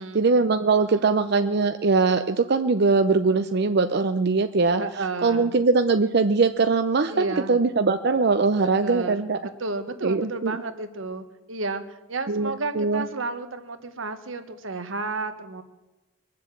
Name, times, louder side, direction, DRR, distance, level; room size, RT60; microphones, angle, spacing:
voice 1, 0.0-4.8 5.2-9.4 10.0-10.6 12.3-13.1, right 4 dB, 55° right, 8 dB, 0.6 m, -21 dB
voice 2, 4.8-5.6 7.1-7.6 8.8-11.8 12.1-15.6, right 3 dB, 85° right, 9 dB, 1.4 m, -32 dB
22.0 x 7.6 x 8.4 m, 1.1 s
head